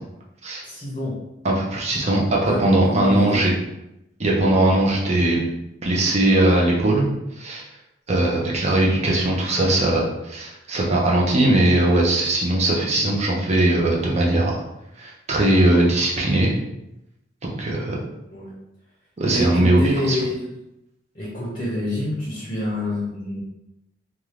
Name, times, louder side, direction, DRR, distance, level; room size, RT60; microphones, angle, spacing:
voice 1, 0.6-1.2 2.4-3.4 18.3-18.5 19.3-20.5 21.1-23.4, left 1 dB, 30° left, -5 dB, 0.7 m, -27 dB
voice 2, 1.4-3.5 4.2-5.4 5.8-7.1 7.4-7.6 8.1-14.6 15.0-16.5 17.4-18.0 19.2-20.2, right 1 dB, 35° right, -3 dB, 0.6 m, -19 dB
2.7 x 2.4 x 3.2 m, 0.88 s
head